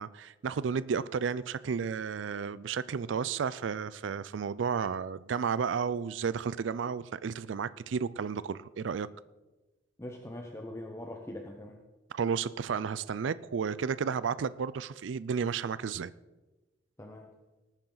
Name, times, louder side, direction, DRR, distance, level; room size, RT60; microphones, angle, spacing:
voice 1, 0.0-9.1 12.1-16.1, right 6 dB, 85° right, 0.4 m, -32 dB
voice 2, 10.0-11.8 17.0-17.3, left 1 dB, 15° left, 0.9 m, -42 dB
19.0 x 9.0 x 3.9 m
head